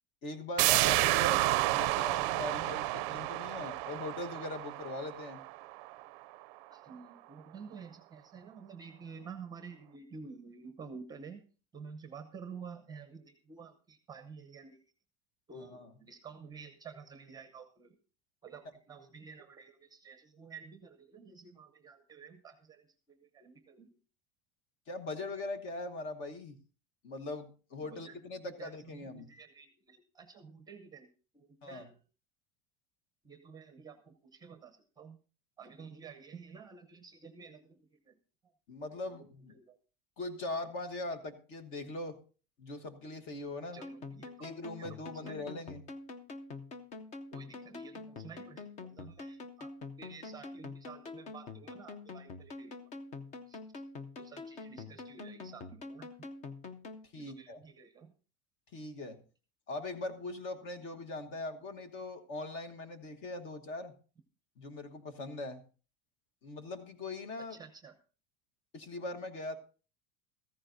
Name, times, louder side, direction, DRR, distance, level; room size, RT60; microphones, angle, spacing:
voice 1, 0.2-5.4 15.6-15.9 24.9-26.6 27.0-29.3 31.6-31.9 38.7-39.5 40.2-42.2 42.6-43.8 44.4-45.8 57.1-57.6 58.7-59.2 59.7-63.9 64.6-65.6 66.4-67.6 68.7-69.6, left 2 dB, 40° left, 7 dB, 1.3 m, -41 dB
sound 1, 0.6-6.1 6.4-6.5, right 19 dB, 60° right, 0.5 m, -30 dB
voice 2, 6.7-11.4 11.7-14.8 15.5-18.0 18.4-24.0 27.8-28.2 28.4-31.9 33.2-35.2 35.6-38.2 38.8-39.8 43.7-44.5 44.8-45.5 47.3-49.7 50.0-52.9 53.5-53.8 54.2-56.3 57.1-58.1 67.5-67.9, right 5 dB, 15° right, 8 dB, 0.8 m, -51 dB
sound 2, 43.8-57.0, left 3 dB, 25° left, 0.6 m, -46 dB
14.5 x 14.5 x 2.6 m, 0.36 s
cardioid pair, 175°, 30 cm